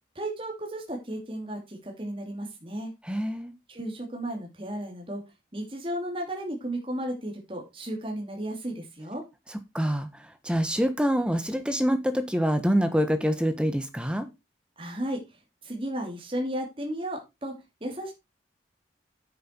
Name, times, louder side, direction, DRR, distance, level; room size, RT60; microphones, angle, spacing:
voice 1, 0.1-2.9 3.7-5.2 5.5-9.2 14.8-17.5 17.8-18.1, right 1 dB, 30° right, 2.8 m, -34 dB
voice 2, 3.0-3.5 9.7-14.3, equal, 5° right, 1.2 m, -26 dB
9.5 x 7.8 x 4.6 m
head